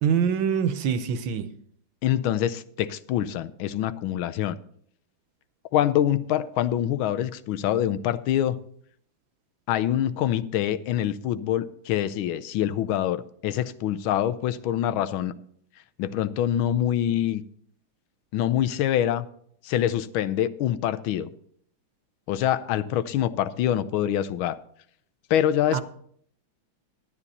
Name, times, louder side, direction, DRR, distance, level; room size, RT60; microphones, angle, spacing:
voice 1, 0.0-1.5 25.7-25.8, right 7 dB, 70° right, 11 dB, 1.5 m, -24 dB
voice 2, 2.0-4.6 5.7-8.6 9.7-15.3 16.0-17.4 18.3-19.3 19.6-21.3 22.3-24.6 25.3-25.8, left 11 dB, 80° left, 14 dB, 1.4 m, -25 dB
12.5 x 9.8 x 4.1 m, 0.63 s
omnidirectional pair, 2.3 m